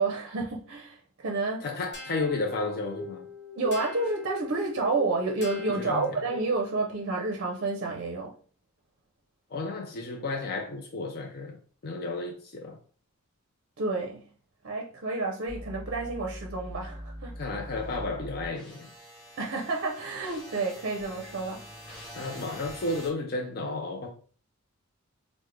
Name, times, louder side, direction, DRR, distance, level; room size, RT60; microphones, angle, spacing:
voice 1, 0.0-1.6 3.6-8.3 13.8-14.2 14.6-17.3 19.4-21.9, right 3 dB, 50° right, 0.5 m, -30 dB
voice 2, 1.6-3.3 5.7-6.1 9.5-11.6 11.8-12.8 17.3-18.9 22.2-24.1, left 3 dB, 45° left, 0.4 m, -32 dB
sound 1, 1.9-6.7, left 2 dB, 75° left, 0.8 m, -42 dB
sound 2, 15.5-23.1, equal, ahead, 1.6 m, -43 dB
3.4 x 2.1 x 3.1 m
head